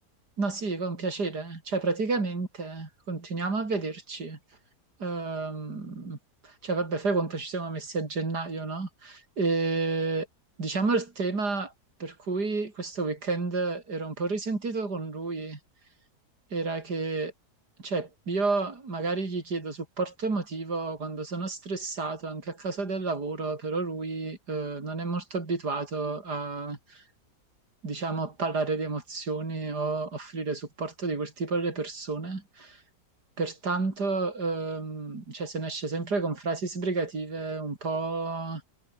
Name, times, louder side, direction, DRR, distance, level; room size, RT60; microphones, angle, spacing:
voice 1, 0.4-4.4 5.0-6.2 6.4-10.3 10.6-11.7 12.0-15.6 16.5-17.3 17.8-27.0 27.8-32.8 33.4-38.6, right 3 dB, 75° right, 4.7 m, -31 dB
omnidirectional pair, 1.7 m